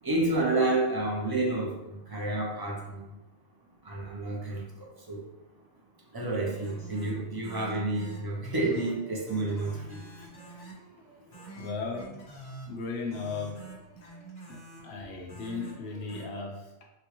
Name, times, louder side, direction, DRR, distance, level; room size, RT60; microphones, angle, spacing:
voice 1, 0.0-3.1 3.8-5.3 6.1-10.3 11.5-11.6, right 2 dB, 30° right, -2 dB, 0.5 m, -30 dB
sound 1, 6.3-16.2, right 2 dB, 50° left, 1.1 m, -47 dB
voice 2, 11.6-12.2 12.7-13.7 14.5-16.8, left 4 dB, 70° left, -1 dB, 0.8 m, -36 dB
4.2 x 2.2 x 3.0 m, 0.94 s
omnidirectional pair, 1.1 m